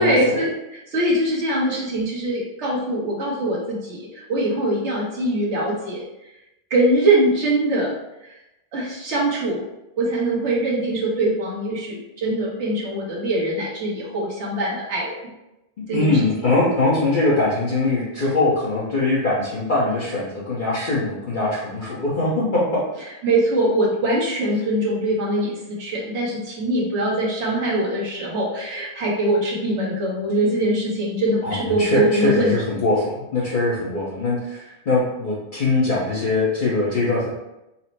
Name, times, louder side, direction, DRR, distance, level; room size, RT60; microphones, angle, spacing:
voice 1, 0.0-6.0 6.7-7.9 8.7-9.6 10.0-15.2 15.9-16.2 23.2-32.5, right 1 dB, 85° right, -4 dB, 1.4 m, -22 dB
voice 2, 15.9-22.6 31.4-37.3, left 2 dB, 50° left, -8 dB, 1.0 m, -22 dB
4.2 x 2.1 x 4.2 m, 0.92 s
omnidirectional pair, 1.2 m